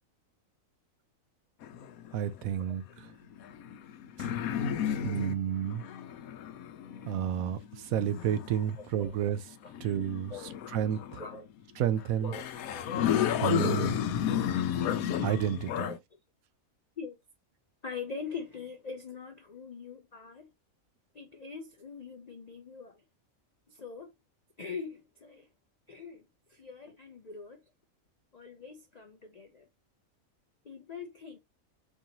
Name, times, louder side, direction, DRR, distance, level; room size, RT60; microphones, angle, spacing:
sound 1, 1.6-2.5 3.3-8.8 9.6-11.4 12.0-12.1 12.3-16.0, left 9 dB, 85° left, 1.0 m, -32 dB
voice 1, 2.1-3.1 5.0-5.8 7.1-9.4 9.8-10.3 10.7-11.2 11.8-12.3 13.4-14.0 15.2-15.9, right 9 dB, 80° right, 1.0 m, -30 dB
voice 2, 8.8-9.2 10.3-10.6 11.2-11.5 12.2-12.8 15.8-16.0 17.0-17.2 17.8-20.5 21.1-23.0 23.7-24.1 24.6-25.5 25.9-27.6 28.3-29.7 30.6-31.4, left 5 dB, 65° left, 0.4 m, -43 dB
4.6 x 2.7 x 2.8 m
omnidirectional pair, 1.5 m